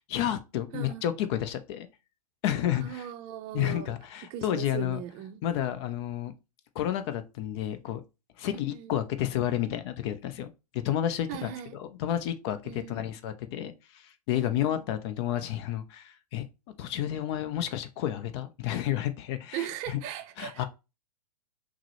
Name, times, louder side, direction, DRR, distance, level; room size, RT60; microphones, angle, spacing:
voice 1, 0.1-1.9 2.4-3.1 3.5-5.0 5.4-6.3 6.7-8.0 8.4-16.4 16.8-20.0 20.4-20.7, left 11 dB, 40° left, 0.5 m, -31 dB
voice 2, 0.7-1.0 2.7-3.9 4.3-5.4 8.5-8.9 11.3-11.8 12.6-13.0 14.5-14.8 19.5-20.7, right 11 dB, 35° right, 0.5 m, -39 dB
5.8 x 2.1 x 3.0 m
hypercardioid pair, 110°, 20 cm